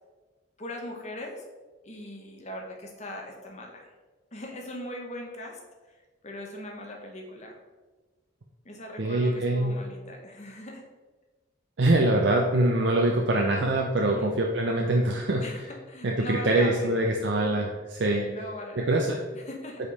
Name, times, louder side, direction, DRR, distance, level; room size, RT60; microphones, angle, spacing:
voice 1, 0.6-1.4 1.8-3.9 4.3-5.6 6.2-7.6 8.6-10.8 14.0-14.3 15.4-17.1 18.1-18.9 19.3-19.9, left 1 dB, 35° left, 1 dB, 1.0 m, -40 dB
voice 2, 9.0-9.7 11.8-15.4 16.0-18.3 18.8-19.2, right 1 dB, 60° right, 0 dB, 0.6 m, -24 dB
5.1 x 5.1 x 4.1 m, 1.3 s
head